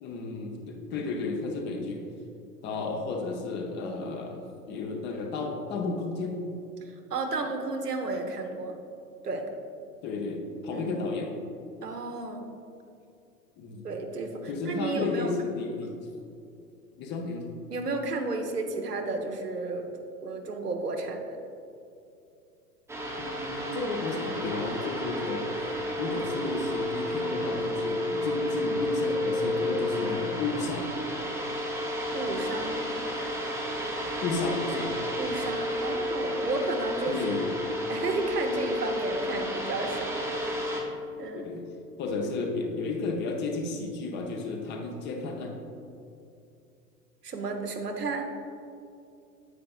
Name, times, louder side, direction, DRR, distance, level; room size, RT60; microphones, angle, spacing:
voice 1, 0.0-2.0 2.6-6.4 10.0-11.3 13.6-13.9 14.5-15.9 17.0-17.5 23.2-25.5 26.0-30.9 34.2-34.9 37.1-37.5 41.3-41.6 42.0-45.6, left 3 dB, 25° left, 2 dB, 0.7 m, -32 dB
voice 2, 7.1-8.8 9.2-9.5 10.7-11.0 11.8-12.5 13.8-15.3 17.7-19.9 20.2-21.4 32.1-32.9 35.2-37.2 37.9-41.5 47.2-48.2, right 3 dB, 75° right, 3 dB, 1.0 m, -32 dB
sound 1, 22.9-40.8, left 1 dB, 5° right, 0.9 m, -31 dB
9.4 x 8.5 x 2.4 m, 2.6 s
figure-of-eight pair, 95°, 47 cm